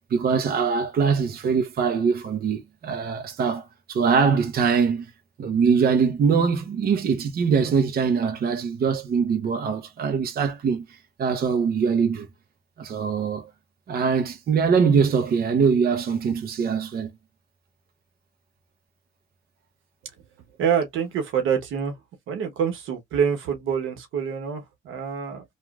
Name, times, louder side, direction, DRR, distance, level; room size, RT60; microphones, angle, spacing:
voice 1, 0.1-5.1 5.4-10.9 11.2-12.3 12.8-13.5 13.9-17.1, right 6 dB, 50° right, 0.6 m, -22 dB
voice 2, 20.6-22.0 22.3-25.4, right 7 dB, 85° right, 1.1 m, -26 dB
3.0 x 2.3 x 2.3 m
cardioid pair, 90°, 20 cm